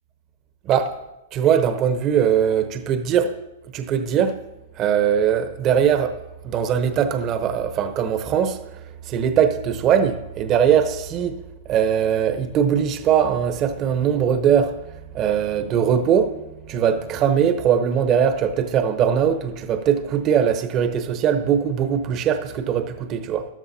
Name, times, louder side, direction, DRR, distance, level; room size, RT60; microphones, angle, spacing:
voice 1, 1.3-3.4 3.7-4.3 4.8-6.1 6.4-8.6 9.1-11.3 11.6-14.8 15.1-23.5, right 8 dB, 35° right, 9 dB, 0.9 m, -20 dB
13.5 x 12.5 x 2.8 m, 0.94 s
hypercardioid pair, 130°, 0 cm